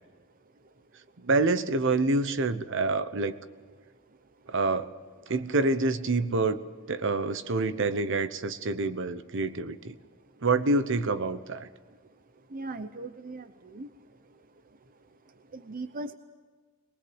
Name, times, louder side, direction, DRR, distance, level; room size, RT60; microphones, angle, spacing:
voice 1, 1.2-3.4 4.5-4.9 5.3-6.6 6.9-10.0 10.4-11.7, right 3 dB, 65° right, 12 dB, 1.0 m, -27 dB
voice 2, 12.5-13.9 14.3-14.4 15.5-16.1, right 2 dB, 45° right, 10 dB, 0.7 m, -39 dB
22.0 x 20.0 x 8.0 m, 1.4 s
head